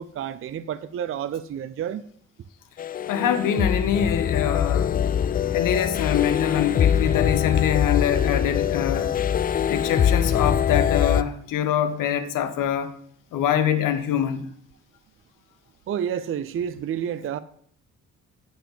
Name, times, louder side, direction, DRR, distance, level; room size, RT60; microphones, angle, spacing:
voice 1, 0.0-2.1 15.9-17.4, right 9 dB, 35° right, 0.6 m, -30 dB
sound 1, 2.8-11.2, left 9 dB, 25° left, 0.4 m, -23 dB
voice 2, 3.1-4.9 5.5-9.1 9.7-12.9 13.3-14.4, left 9 dB, 60° left, 1.2 m, -24 dB
8.8 x 4.5 x 7.3 m
hypercardioid pair, 45°, 37 cm